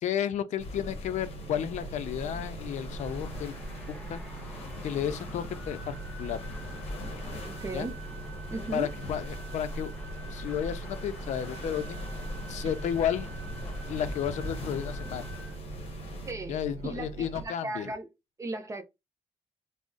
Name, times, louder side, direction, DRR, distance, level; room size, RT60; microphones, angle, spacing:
voice 1, 0.0-3.5 3.9-4.2 4.8-6.4 7.7-7.9 8.7-9.9 10.3-12.1 12.5-13.3 13.9-15.3 16.5-17.9, left 9 dB, 85° left, 0.4 m, -32 dB
sound 1, 0.6-16.3, left 1 dB, 55° left, 0.8 m, -41 dB
sound 2, 1.1-17.5, right 3 dB, 55° right, 0.8 m, -43 dB
sound 3, 1.9-15.6, right 1 dB, 10° left, 0.7 m, -49 dB
voice 2, 7.5-8.0 8.5-8.9 16.3-18.1 18.4-18.8, right 2 dB, 25° right, 0.5 m, -36 dB
2.5 x 2.0 x 3.6 m
wide cardioid pair, 160°, 12 cm